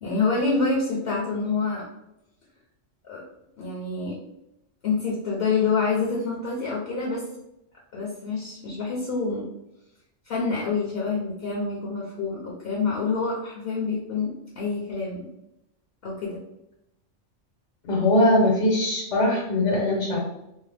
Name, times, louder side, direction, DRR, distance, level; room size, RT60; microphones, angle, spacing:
voice 1, 0.0-1.8 3.0-3.2 3.6-4.2 4.8-7.2 7.9-9.4 10.2-15.3 16.0-16.4, left 4 dB, 60° left, -4 dB, 0.8 m, -27 dB
voice 2, 17.8-20.2, left 1 dB, 85° left, -4 dB, 1.3 m, -21 dB
2.7 x 2.1 x 3.2 m, 0.84 s
omnidirectional pair, 1.2 m